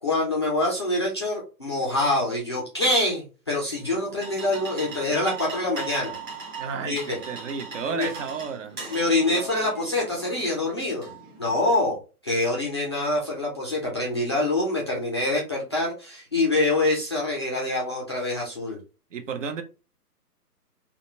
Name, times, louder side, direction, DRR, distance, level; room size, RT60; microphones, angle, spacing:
voice 1, 0.0-6.2 6.9-7.2 7.9-8.1 8.9-11.1 11.4-18.8, left 2 dB, 20° left, 0.4 m, -25 dB
sound 1, 3.8-11.7, right 4 dB, 15° right, 0.7 m, -39 dB
voice 2, 6.6-8.8 19.1-19.6, right 5 dB, 50° right, 0.8 m, -32 dB
3.7 x 2.3 x 2.6 m
figure-of-eight pair, 135°, 48 cm